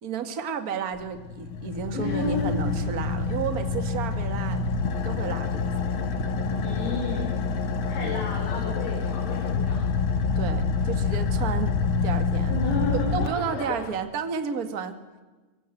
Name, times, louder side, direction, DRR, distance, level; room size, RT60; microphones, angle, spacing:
voice 1, 0.0-4.6 5.0-5.9 8.0-8.2 10.3-12.5 12.9-15.0, right 6 dB, 40° right, 7 dB, 1.3 m, -32 dB
Car / Idling, 1.0-13.9, left 4 dB, 55° left, 1.4 m, -27 dB
voice 2, 1.9-2.5 6.6-7.4 7.9-9.9 12.5-13.8, left 3 dB, 75° left, -1 dB, 6.3 m, -32 dB
26.0 x 24.5 x 7.9 m, 1.2 s
omnidirectional pair, 4.7 m